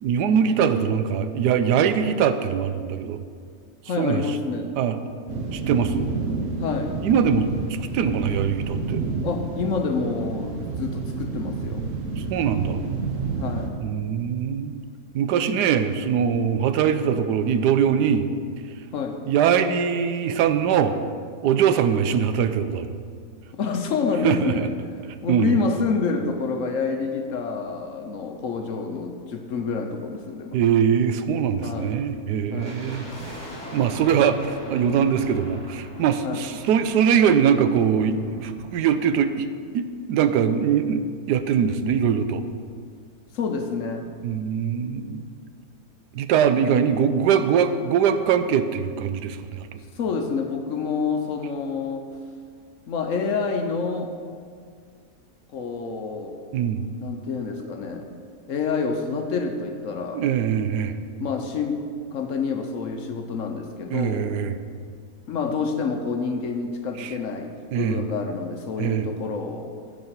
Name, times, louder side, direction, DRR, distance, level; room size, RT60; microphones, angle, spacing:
voice 1, 0.0-3.2 4.0-4.2 4.8-5.0 5.5-6.1 7.0-7.5 7.8-9.0 12.2-12.8 13.8-14.7 15.1-18.3 19.3-21.0 21.4-22.9 24.2-24.7 25.3-25.5 30.5-33.4 33.7-39.5 39.7-42.4 44.2-45.3 46.1-49.8 56.5-56.9 60.1-61.0 63.9-64.6 67.0-67.1 67.7-68.0 68.8-69.1, right 7 dB, 85° right, 10 dB, 1.2 m, -22 dB
voice 2, 3.9-4.7 6.6-7.0 9.2-11.8 13.4-13.8 18.9-19.2 23.5-24.7 25.2-30.6 31.6-32.0 32.5-32.8 36.2-36.5 43.3-44.1 50.0-52.1 52.9-54.1 55.5-56.4 57.0-58.1 58.5-60.2 61.2-61.8 62.1-64.3 65.3-69.7, left 5 dB, 60° left, 5 dB, 1.0 m, -28 dB
sound 1, 5.3-13.7, right 4 dB, 55° right, 1.3 m, -29 dB
sound 2, 32.6-39.9 40.1-40.2 40.9-42.7 43.0-43.1 43.3-43.6 44.0-44.1, left 1 dB, 15° left, 2.1 m, -42 dB
10.0 x 4.9 x 7.8 m, 2.1 s
omnidirectional pair, 1.7 m